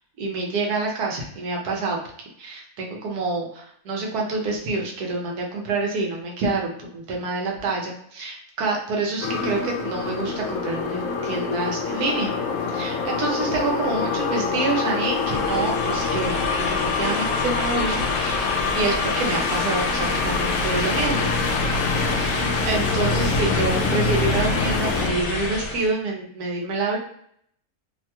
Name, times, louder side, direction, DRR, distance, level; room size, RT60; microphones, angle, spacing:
voice 1, 0.2-2.0 2.4-12.3 12.7-18.4 18.7-21.3 22.2-27.0, right 3 dB, 90° right, 0 dB, 1.3 m, -27 dB
sound 1, 9.2-25.1, left 4 dB, 70° left, 0.9 m, -25 dB
sound 2, 15.0-25.9, left 3 dB, 85° left, 1.1 m, -29 dB
3.1 x 2.2 x 2.8 m, 0.67 s
omnidirectional pair, 1.6 m